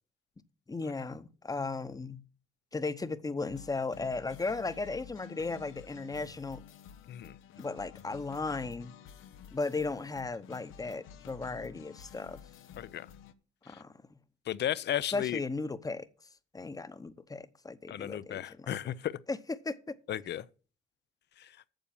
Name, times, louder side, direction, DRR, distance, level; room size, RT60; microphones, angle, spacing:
voice 1, 0.7-2.2 2.7-6.6 7.6-8.9 9.5-12.4 13.7-13.9 15.1-16.1 16.5-18.7 19.3-19.4 19.6-20.0, left 3 dB, 20° left, 0.9 m, -36 dB
sound 1, 3.5-13.3, left 8 dB, 90° left, 0.9 m, -51 dB
voice 2, 12.8-13.1 13.7-13.8 14.5-15.4 17.9-19.2 20.1-20.4 21.4-21.5, left 11 dB, 60° left, 0.6 m, -34 dB
9.0 x 7.0 x 7.2 m
cardioid pair, 90°, 20 cm